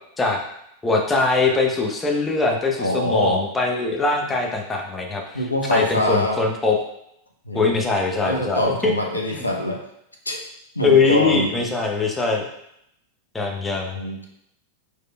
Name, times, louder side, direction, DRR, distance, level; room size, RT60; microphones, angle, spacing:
voice 1, 0.8-5.4 5.7-6.8 7.5-8.9 9.3-9.4 10.8-12.4 13.3-14.0, left 3 dB, 15° left, 1 dB, 0.7 m, -21 dB
voice 2, 2.8-3.4 5.3-6.4 7.5-7.8 8.2-9.8 10.3-10.4 10.7-11.5 13.9-14.3, left 1 dB, 80° left, 1 dB, 0.6 m, -24 dB
4.7 x 4.1 x 2.2 m, 0.77 s
figure-of-eight pair, 90°, 0 cm